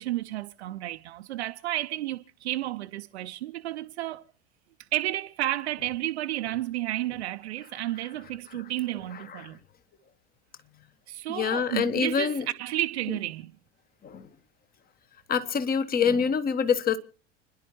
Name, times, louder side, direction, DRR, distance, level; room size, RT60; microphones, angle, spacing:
voice 1, 0.0-4.2 4.9-9.6 11.1-13.5, right 15 dB, 65° right, 0.6 m, -32 dB
voice 2, 11.3-12.4 14.0-14.3 15.3-17.0, left 6 dB, 25° left, 1.1 m, -26 dB
29.5 x 11.0 x 3.1 m
figure-of-eight pair, 75°, 35 cm